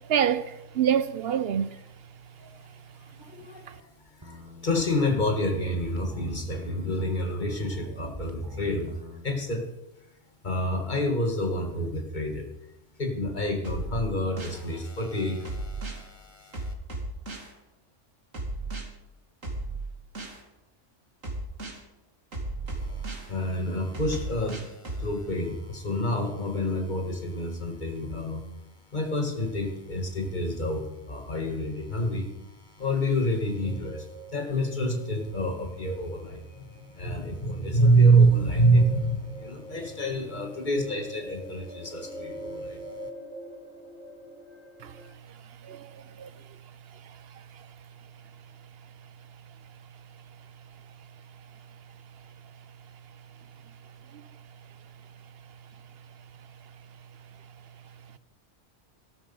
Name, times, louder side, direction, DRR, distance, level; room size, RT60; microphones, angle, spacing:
voice 1, 0.1-1.7 44.8-44.9 45.6-46.3, right 9 dB, 60° right, 0.8 m, -26 dB
voice 2, 3.1-3.9 4.2-4.4 4.6-9.0 9.2-9.7 10.4-12.5 13.0-16.7 22.7-28.4 28.9-32.3 32.6-43.0, right 1 dB, 35° left, 2.0 m, -27 dB
sound 1, 4.2-9.3, left 1 dB, 15° right, 1.4 m, -44 dB
sound 2, 13.6-14.6 15.4-16.0 16.5-17.5 18.3-18.8 19.4-20.4 21.2-21.8 22.3-23.3 23.9-25.1, right 2 dB, 85° right, 3.1 m, -34 dB
sound 3, 33.6-45.1, equal, 90° left, 4.6 m, -45 dB
13.5 x 12.5 x 5.5 m
omnidirectional pair, 1.3 m